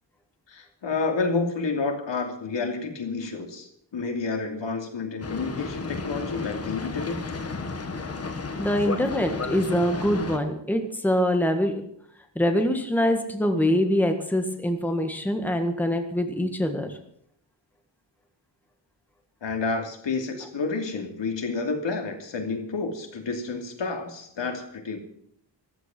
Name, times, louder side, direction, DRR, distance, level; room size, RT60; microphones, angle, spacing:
voice 1, 0.5-7.2 19.4-25.0, left 4 dB, 80° left, 4 dB, 3.0 m, -30 dB
Boat Water vehicle, 5.2-10.4, left 4 dB, 35° left, 1.6 m, -33 dB
voice 2, 8.6-11.8 12.4-16.9, equal, 5° left, 5 dB, 1.7 m, -24 dB
14.5 x 14.0 x 6.1 m, 0.68 s
wide cardioid pair, 165°, 43 cm